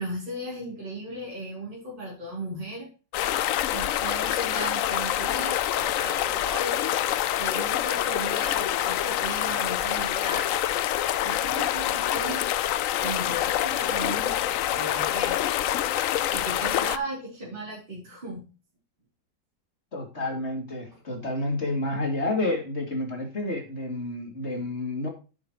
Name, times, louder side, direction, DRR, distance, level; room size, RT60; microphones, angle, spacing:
voice 1, 0.0-2.9 3.7-7.1 7.4-10.6 11.2-12.4 13.0-15.5 16.3-18.4, right 1 dB, 30° right, -5 dB, 4.3 m, -36 dB
sound 1, 3.1-17.0, left 12 dB, 70° left, 0.8 m, -26 dB
voice 2, 19.9-25.1, left 2 dB, 40° left, 2 dB, 3.1 m, -30 dB
10.5 x 7.8 x 3.1 m, 0.33 s
omnidirectional pair, 1.8 m